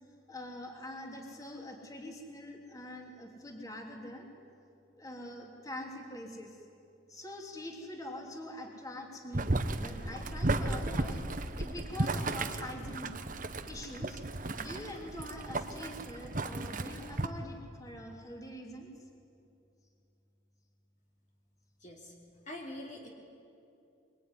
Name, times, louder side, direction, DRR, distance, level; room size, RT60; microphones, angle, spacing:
voice 1, 0.3-4.3 5.0-6.6 7.1-11.2 11.6-13.1 13.6-14.2 14.6-19.0, left 1 dB, 15° left, 1 dB, 3.0 m, -44 dB
Boiling, 9.3-17.3, right 2 dB, 40° right, 1.2 m, -34 dB
voice 2, 21.8-22.1 22.4-23.1, left 1 dB, 35° left, 0 dB, 2.7 m, -44 dB
23.5 x 23.5 x 9.8 m, 2.7 s
head